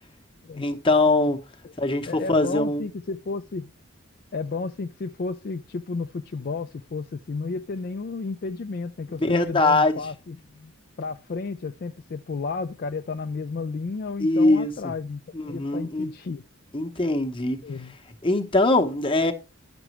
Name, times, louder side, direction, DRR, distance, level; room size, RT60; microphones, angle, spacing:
voice 1, 0.5-1.4 1.8-2.8 9.1-10.0 14.2-14.9 15.3-16.1 16.7-17.6 18.2-19.3, left 2 dB, 25° left, 0.8 m, -22 dB
voice 2, 2.1-3.7 4.3-10.7 11.0-16.4 17.6-17.9, left 4 dB, 45° left, 0.3 m, -32 dB
10.0 x 6.0 x 3.0 m
head